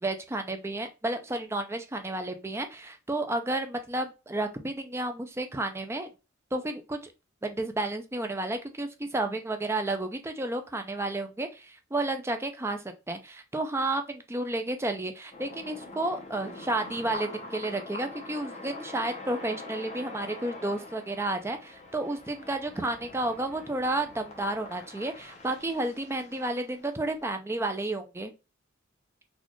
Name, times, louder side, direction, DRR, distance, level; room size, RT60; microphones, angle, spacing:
voice 1, 0.0-6.1 6.5-7.1 7.4-28.3, right 2 dB, 15° right, 6 dB, 0.4 m, -31 dB
sound 1, 15.3-27.3, left 2 dB, 35° left, 0.9 m, -44 dB
4.1 x 2.4 x 3.0 m, 0.28 s
head